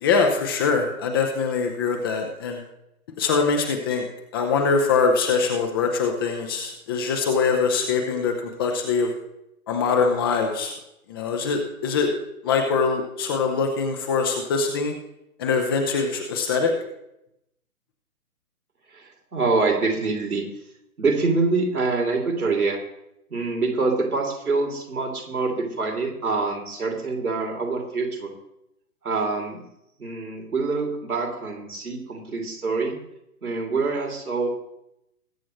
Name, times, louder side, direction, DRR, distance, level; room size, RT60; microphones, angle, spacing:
voice 1, 0.0-2.6 3.2-4.0 4.3-8.3 8.6-9.1 9.7-10.7 11.1-12.1 12.4-14.9 15.4-16.7, left 5 dB, 15° left, 3 dB, 0.7 m, -23 dB
voice 2, 18.9-20.5 21.0-22.8 23.3-28.3 29.0-29.6 30.0-33.0 33.4-34.5, right 3 dB, 70° right, 2 dB, 2.9 m, -25 dB
20.5 x 8.4 x 3.1 m, 0.83 s
figure-of-eight pair, 130°, 45 cm